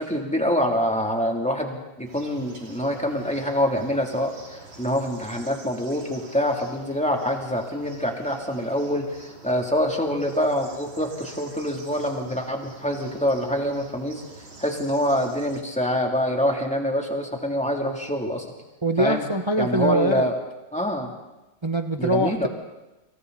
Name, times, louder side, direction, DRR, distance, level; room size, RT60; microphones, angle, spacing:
voice 1, 0.0-14.2 14.6-18.4 19.0-19.2 19.6-20.4 20.7-21.1 22.0-22.5, equal, 5° left, 1 dB, 3.0 m, -25 dB
sound 1, 2.1-15.6, right 2 dB, 85° right, 3.9 m, -46 dB
voice 2, 18.8-20.2 21.6-22.5, right 1 dB, 45° right, 7 dB, 0.3 m, -23 dB
29.5 x 26.5 x 4.2 m, 1.0 s
omnidirectional pair, 2.2 m